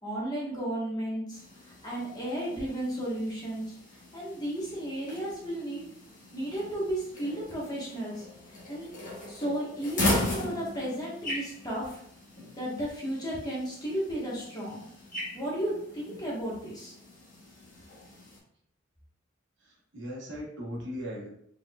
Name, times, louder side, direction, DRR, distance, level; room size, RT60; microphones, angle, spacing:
voice 1, 0.0-1.4 1.8-5.8 6.3-8.2 8.7-8.9 9.3-12.0 12.6-14.8 15.3-16.9, right 1 dB, 20° left, -6 dB, 1.4 m, -34 dB
sound 1, 1.3-18.4, left 1 dB, 45° left, 1.4 m, -38 dB
voice 2, 19.6-21.3, equal, 60° right, -3 dB, 1.2 m, -38 dB
4.2 x 3.8 x 2.4 m, 0.68 s
head